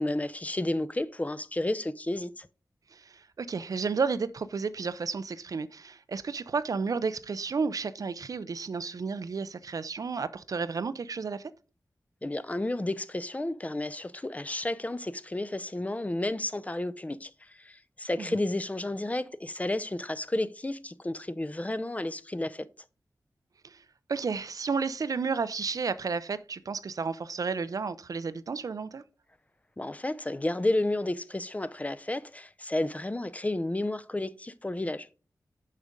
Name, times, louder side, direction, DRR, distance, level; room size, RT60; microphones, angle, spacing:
voice 1, 0.0-2.5 12.2-22.7 29.8-35.1, left 1 dB, 20° left, 0.4 m, -32 dB
voice 2, 2.9-11.5 18.2-18.4 23.6-23.8 24.1-29.0, right 5 dB, 65° right, 0.4 m, -32 dB
6.5 x 5.0 x 3.6 m
cardioid pair, 55°, 7 cm